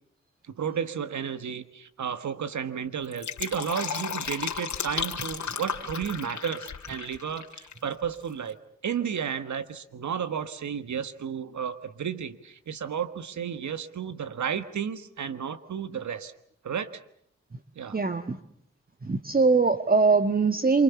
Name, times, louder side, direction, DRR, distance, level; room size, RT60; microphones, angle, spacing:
voice 1, 0.5-8.6 8.8-16.3 16.6-17.0 17.7-18.0, right 7 dB, 80° right, 12 dB, 1.5 m, -32 dB
Fill (with liquid), 3.0-7.8 8.0-8.1, left 7 dB, 80° left, 2.5 m, -34 dB
voice 2, 17.9-18.4 19.0-20.8, right 4 dB, 30° right, 8 dB, 1.5 m, -22 dB
27.5 x 25.0 x 7.0 m, 0.67 s
cardioid pair, 45°, 29 cm